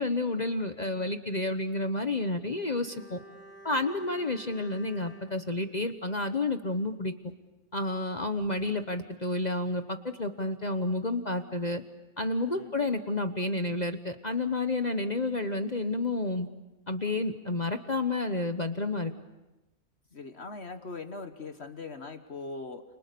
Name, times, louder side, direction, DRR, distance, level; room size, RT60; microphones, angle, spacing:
voice 1, 0.0-3.2 3.6-7.1 7.7-11.8 12.2-16.5 16.9-19.1, left 2 dB, 35° left, 8 dB, 1.2 m, -30 dB
Bowed string instrument, 2.2-6.6 6.9-7.1, equal, 10° left, 7.9 m, -52 dB
voice 2, 12.5-13.0 20.1-22.8, left 3 dB, 50° left, 8 dB, 1.6 m, -41 dB
29.5 x 29.5 x 6.9 m, 1.0 s
omnidirectional pair, 1.4 m